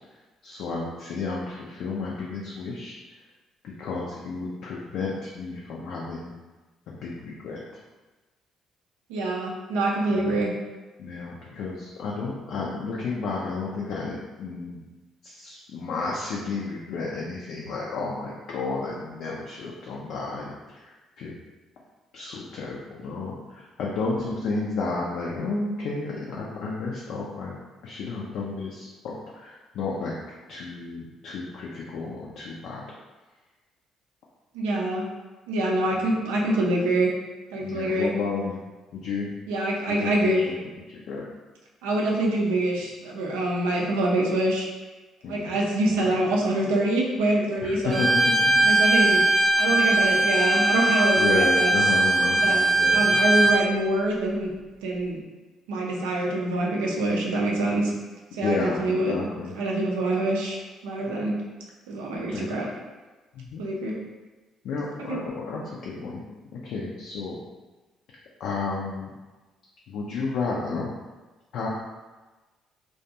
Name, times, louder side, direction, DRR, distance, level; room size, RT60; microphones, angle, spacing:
voice 1, 0.4-3.0 3.6-6.3 6.9-7.6 10.1-10.4 11.0-14.8 15.2-20.5 21.2-21.3 22.1-27.6 27.8-30.1 30.5-32.8 35.9-36.0 37.6-38.6 38.9-39.3 39.9-40.6 40.9-41.2 45.2-45.6 45.9-46.1 47.6-48.6 49.7-49.8 51.2-53.0 58.4-58.8 59.1-59.5 61.1-61.2 62.1-62.5 63.4-63.6 64.6-66.2 66.5-67.4 68.4-69.1 69.9-70.9 71.5-71.7, left 4 dB, 60° left, -4 dB, 0.3 m, -32 dB
voice 2, 9.1-10.5 34.5-35.1 35.5-37.1 37.5-38.1 39.5-40.4 41.8-44.7 45.2-48.0 48.6-51.7 52.4-52.6 52.9-54.5 54.8-55.2 55.7-57.9 58.3-59.2 59.5-60.6 60.8-61.3 61.9-62.7 63.6-63.9 65.1-65.2, right 1 dB, 75° right, -2 dB, 0.4 m, -25 dB
Bowed string instrument, 47.9-53.7, right 2 dB, 20° right, 0.6 m, -20 dB
2.5 x 2.2 x 2.7 m, 1.2 s
figure-of-eight pair, 50°, 0 cm